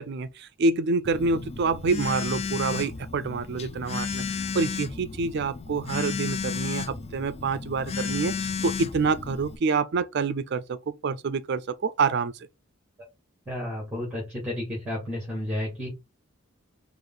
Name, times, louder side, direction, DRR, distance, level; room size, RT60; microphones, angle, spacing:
voice 1, 0.0-12.3, right 4 dB, 55° right, 0.4 m, -27 dB
Telephone, 1.0-9.6, left 5 dB, 30° left, 0.4 m, -33 dB
voice 2, 13.5-15.9, left 1 dB, 5° right, 2.1 m, -32 dB
5.0 x 2.5 x 3.8 m
head